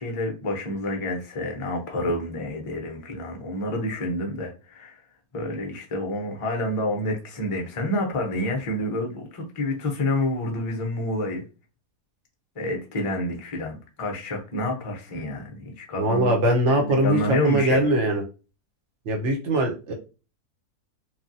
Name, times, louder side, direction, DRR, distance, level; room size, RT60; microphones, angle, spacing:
voice 1, 0.0-5.0 5.3-11.4 12.5-16.4 16.7-17.9, left 1 dB, 35° left, 0.5 m, -28 dB
voice 2, 16.0-18.2 19.1-19.9, right 1 dB, 55° right, 1.0 m, -22 dB
3.2 x 2.3 x 2.6 m
omnidirectional pair, 1.7 m